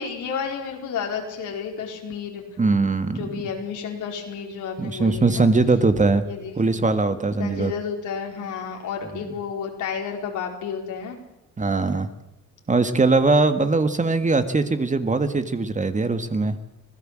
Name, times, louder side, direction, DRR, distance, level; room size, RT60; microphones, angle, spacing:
voice 1, 0.0-2.4 3.1-5.5 6.2-6.8 7.4-11.2, left 6 dB, 80° left, 1 dB, 4.8 m, -31 dB
voice 2, 2.6-3.2 4.8-6.2 6.6-7.7 11.6-12.1 12.7-16.5, right 3 dB, 25° right, 9 dB, 1.7 m, -21 dB
25.5 x 16.5 x 7.6 m, 0.86 s
cardioid pair, 90°, 30 cm